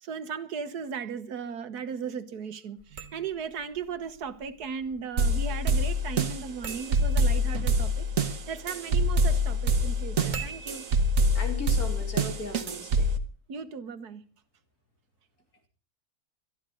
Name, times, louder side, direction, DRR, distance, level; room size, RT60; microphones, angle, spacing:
voice 1, 0.0-8.1 8.5-10.9 13.5-14.2, right 6 dB, 85° right, 1.8 m, -36 dB
sound 1, 2.8-12.6, right 4 dB, 30° right, 1.3 m, -47 dB
sound 2, 5.2-13.2, right 1 dB, 60° right, 1.5 m, -25 dB
voice 2, 11.4-13.1, left 3 dB, 70° left, 3.5 m, -37 dB
21.5 x 13.0 x 3.8 m
omnidirectional pair, 1.6 m